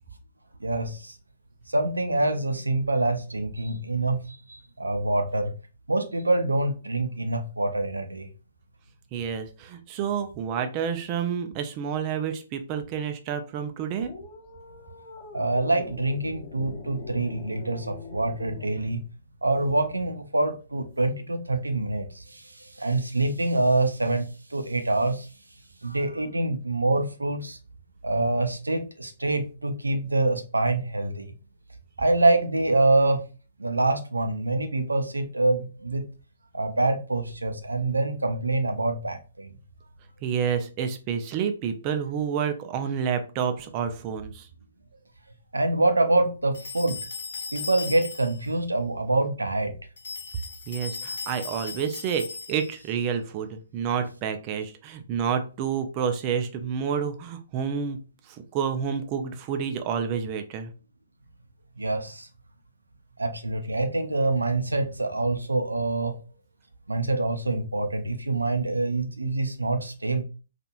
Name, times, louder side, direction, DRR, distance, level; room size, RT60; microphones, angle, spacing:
voice 1, 0.6-1.2 1.7-5.5 5.9-8.3 15.3-19.0 19.4-24.2 24.5-25.3 25.8-27.6 28.0-31.3 32.0-33.2 33.6-36.0 36.5-39.5 45.5-47.0 47.5-49.7 61.8-62.3 63.2-66.2 66.9-70.2, right 2 dB, 85° right, 0.5 m, -25 dB
voice 2, 9.1-14.1 40.2-44.5 50.7-58.0 58.3-60.7, right 7 dB, 30° right, 0.4 m, -29 dB
sound 1, 14.0-18.8, left 4 dB, 40° left, 0.8 m, -42 dB
sound 2, 46.5-48.5 50.0-52.9, left 4 dB, 65° left, 1.0 m, -37 dB
2.9 x 2.4 x 2.3 m
figure-of-eight pair, 125°, 0 cm